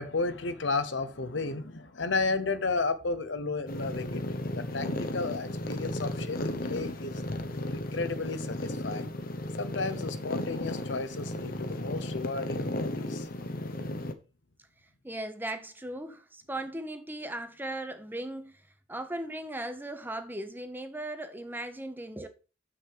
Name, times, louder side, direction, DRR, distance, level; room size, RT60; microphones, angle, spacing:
voice 1, 0.0-7.2 7.6-9.0 9.6-13.3, left 3 dB, 75° left, 1.0 m, -33 dB
sound 1, 3.7-14.1, left 1 dB, 50° left, 0.9 m, -34 dB
voice 2, 15.0-18.6 18.9-22.3, right 1 dB, 10° right, 1.0 m, -37 dB
7.7 x 6.2 x 5.0 m
head